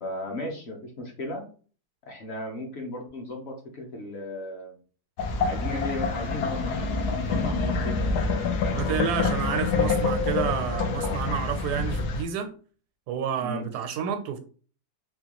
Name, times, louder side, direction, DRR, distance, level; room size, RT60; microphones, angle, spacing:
voice 1, 0.0-1.4 2.1-4.8 5.4-9.3 13.4-13.6, left 1 dB, 50° left, 0.9 m, -36 dB
sound 1, 5.2-12.2, left 4 dB, 90° left, 1.2 m, -27 dB
voice 2, 8.7-12.5 13.1-14.4, right 8 dB, 90° right, 1.1 m, -29 dB
3.7 x 2.3 x 2.9 m
omnidirectional pair, 1.6 m